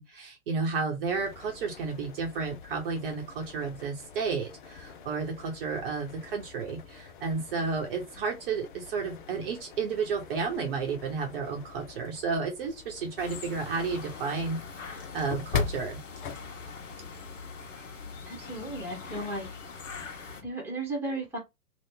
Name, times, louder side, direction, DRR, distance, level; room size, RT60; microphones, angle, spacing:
voice 1, 0.0-16.0, right 4 dB, 40° right, 1.0 m, -32 dB
sound 1, 1.1-17.3, left 6 dB, 35° left, 0.6 m, -42 dB
sound 2, 13.2-20.4, left 5 dB, 55° left, 1.0 m, -43 dB
voice 2, 18.2-19.5 20.4-21.4, right 2 dB, 5° right, 1.2 m, -35 dB
2.9 x 2.4 x 3.6 m
figure-of-eight pair, 120°, 44 cm